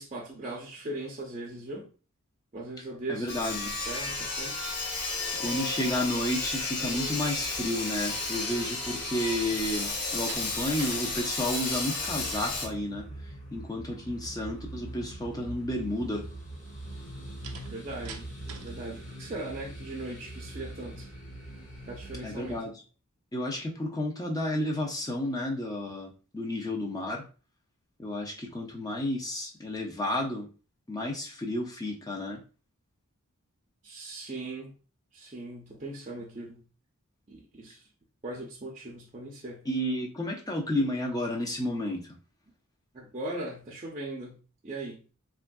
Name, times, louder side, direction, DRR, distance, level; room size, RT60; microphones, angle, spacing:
voice 1, 0.0-1.9 2.5-4.7 17.7-18.3 18.6-21.1 21.9-22.7 33.8-34.7 35.1-36.6 37.3-37.8 38.2-39.6 42.9-45.0, right 2 dB, 30° right, 0.6 m, -39 dB
voice 2, 3.1-3.7 5.4-13.1 13.5-16.2 22.2-22.7 23.3-27.2 28.0-30.5 30.9-32.4 39.7-42.0, left 1 dB, 15° left, 0.6 m, -31 dB
Sawing, 3.3-12.7, left 3 dB, 80° left, 0.8 m, -33 dB
Slam, 9.9-11.0 11.4-11.8 17.4-18.8, right 6 dB, 85° right, 0.5 m, -45 dB
sound 1, 11.9-22.6, right 1 dB, 30° left, 1.4 m, -43 dB
3.4 x 2.5 x 2.2 m
head